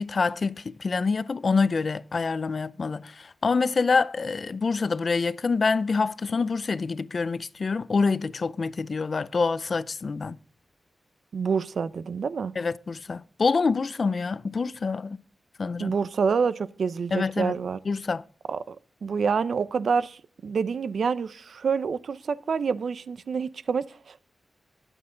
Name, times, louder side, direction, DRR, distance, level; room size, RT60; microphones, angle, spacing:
voice 1, 0.0-10.4 12.6-15.2 15.6-15.9 17.1-17.5 17.9-18.2, left 4 dB, 45° left, 0.5 m, -26 dB
voice 2, 11.3-12.5 15.8-17.8 18.5-18.8 19.0-24.2, right 5 dB, 70° right, 0.7 m, -27 dB
22.0 x 8.0 x 3.9 m
wide cardioid pair, 125°, 0 cm